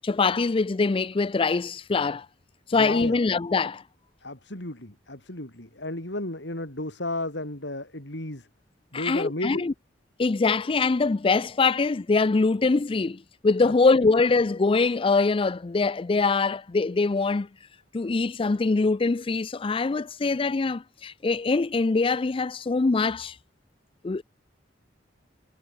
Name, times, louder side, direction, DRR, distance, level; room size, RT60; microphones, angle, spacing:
voice 1, 0.0-2.3 2.7-3.8 8.9-9.7 10.2-17.5 17.9-23.4 24.0-24.2, left 3 dB, 30° left, 0.4 m, -23 dB
voice 2, 2.7-3.2 4.2-8.5 8.9-9.6 13.6-13.7, left 1 dB, 70° left, 5.2 m, -33 dB
head